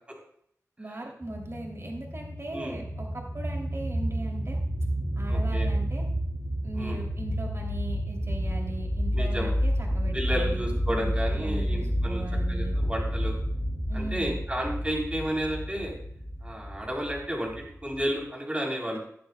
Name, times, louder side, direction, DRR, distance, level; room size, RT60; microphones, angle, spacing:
voice 1, 0.8-4.6 5.1-6.0 6.6-12.7 13.9-14.4 18.9-19.0, right 1 dB, 50° right, -1 dB, 3.0 m, -39 dB
sound 1, 1.2-18.2, equal, 10° left, 3.0 m, -30 dB
voice 2, 5.3-5.7 6.8-7.0 9.1-9.6 10.1-12.2 12.5-13.4 13.9-15.9 16.4-19.0, equal, 20° right, -2 dB, 3.7 m, -32 dB
15.0 x 10.5 x 2.3 m, 0.67 s
wide cardioid pair, 75°, 6 cm